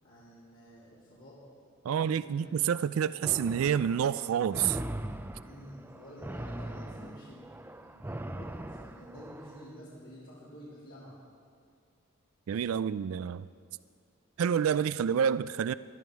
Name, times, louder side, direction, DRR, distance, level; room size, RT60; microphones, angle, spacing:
voice 1, 0.0-1.4 1.9-2.6 5.4-7.5 7.8-11.2, equal, 75° left, 3.4 m, -50 dB
voice 2, 1.8-4.8 12.5-13.5 14.4-15.7, right 8 dB, 85° right, 0.3 m, -28 dB
sound 1, 3.2-9.7, right 1 dB, 10° right, 0.5 m, -41 dB
20.0 x 12.5 x 4.7 m
head